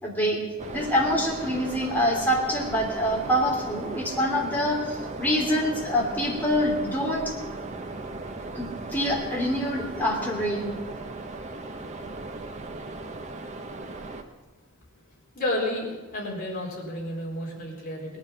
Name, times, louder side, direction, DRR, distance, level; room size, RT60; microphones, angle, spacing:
voice 1, 0.0-0.4 0.7-7.3 8.5-10.7, equal, 10° left, -2 dB, 3.0 m, -25 dB
sound 1, 0.6-14.2, right 2 dB, 35° right, 1.0 m, -37 dB
voice 2, 15.3-18.2, left 1 dB, 45° left, -3 dB, 4.0 m, -31 dB
18.5 x 11.5 x 5.8 m, 1.3 s
head